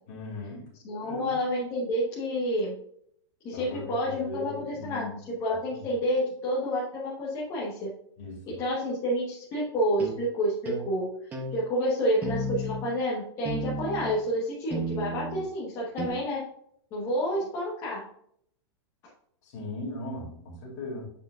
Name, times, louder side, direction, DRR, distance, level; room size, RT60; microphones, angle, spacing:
voice 1, 0.1-0.6 1.0-1.3 3.5-5.1 5.7-5.9 8.2-8.6 19.4-21.1, left 2 dB, 40° left, -2 dB, 2.4 m, -38 dB
voice 2, 0.8-2.8 3.4-7.9 8.5-16.4 16.9-18.0, equal, 25° left, -6 dB, 1.2 m, -29 dB
sound 1, 10.0-10.2 10.7-10.9 11.3-11.5 12.2-12.9 13.5-14.2 14.7-15.5 16.0-16.1, right 2 dB, 10° right, 0.7 m, -33 dB
7.7 x 5.0 x 2.4 m, 0.68 s
supercardioid pair, 170°, 15 cm